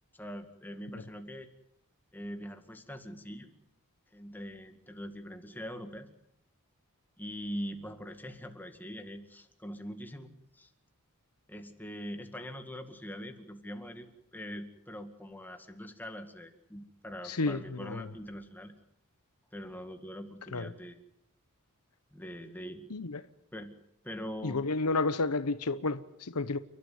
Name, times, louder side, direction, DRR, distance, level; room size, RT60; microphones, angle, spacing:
voice 1, 0.1-1.5 2.1-3.5 4.1-6.1 7.2-10.7 11.5-18.7 19.5-21.0 22.1-22.9 23.5-23.7 24.0-24.6, equal, 10° left, 2.2 m, -43 dB
voice 2, 17.3-17.6 17.9-18.0 20.5-20.7 22.9-23.1 24.4-26.6, left 3 dB, 90° left, 0.9 m, -30 dB
29.5 x 12.5 x 9.6 m
head